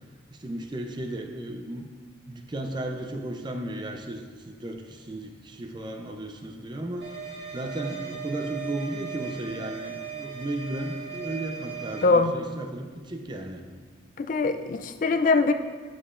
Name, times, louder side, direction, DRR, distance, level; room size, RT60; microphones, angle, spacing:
voice 1, 0.3-1.9 2.3-7.1 7.5-13.6, right 1 dB, 25° right, 4 dB, 0.5 m, -35 dB
sound 1, 7.0-12.0, right 7 dB, 70° right, 1.6 m, -38 dB
voice 2, 12.0-12.3 14.2-15.5, left 3 dB, 45° left, 9 dB, 0.3 m, -22 dB
8.9 x 6.6 x 2.5 m, 1.5 s
head